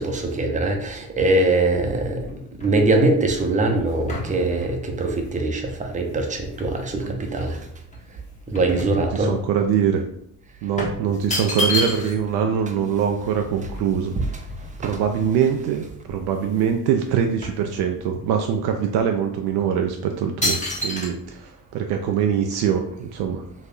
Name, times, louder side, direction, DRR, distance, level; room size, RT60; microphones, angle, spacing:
voice 1, 0.0-7.7 8.5-9.3 14.2-15.0, right 2 dB, 15° right, 3 dB, 0.7 m, -22 dB
sound 1, 2.0-6.9 7.4-9.6 9.9-10.0 10.8-12.3 12.6-12.7 12.9-15.1 15.6-15.7 16.0-16.8 17.0-18.3 18.8-19.0 19.6-19.9 20.4-21.1, left 2 dB, 15° left, 1.1 m, -30 dB
voice 2, 8.9-10.0 10.6-14.1 14.8-23.4, right 8 dB, 55° right, 4 dB, 0.5 m, -23 dB
3.9 x 2.6 x 2.5 m, 0.72 s
figure-of-eight pair, 50°, 47 cm